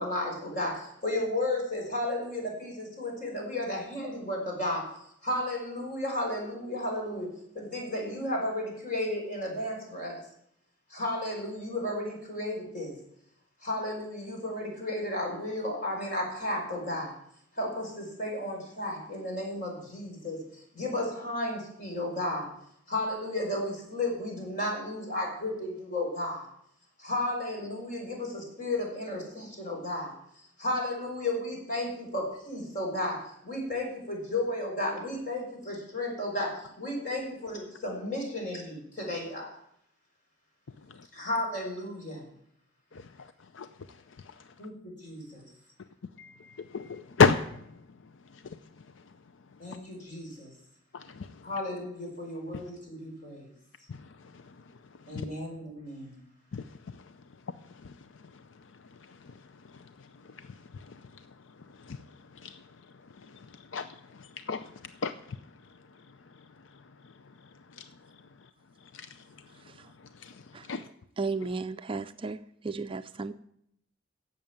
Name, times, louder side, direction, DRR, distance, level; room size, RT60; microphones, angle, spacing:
voice 1, 0.0-10.2 10.9-12.9 13.6-17.1 17.6-22.5 22.9-26.4 27.0-30.1 30.6-39.5 41.1-42.2 44.6-44.7 45.0-45.5 49.6-50.5 51.4-53.5 55.1-56.2, left 1 dB, 45° left, 5.0 m, -33 dB
voice 2, 42.9-44.4 46.2-47.7 48.3-48.9 50.9-51.5 52.5-52.6 53.9-54.6 55.0-55.3 56.5-57.1 57.7-58.6 58.9-61.3 61.6-62.7 63.0-65.4 65.6-68.2 68.9-69.6 70.0-70.9, left 5 dB, 80° left, 0.5 m, -35 dB
voice 3, 71.2-72.4 72.6-73.3, right 4 dB, 30° right, 0.4 m, -34 dB
11.0 x 7.7 x 8.9 m
head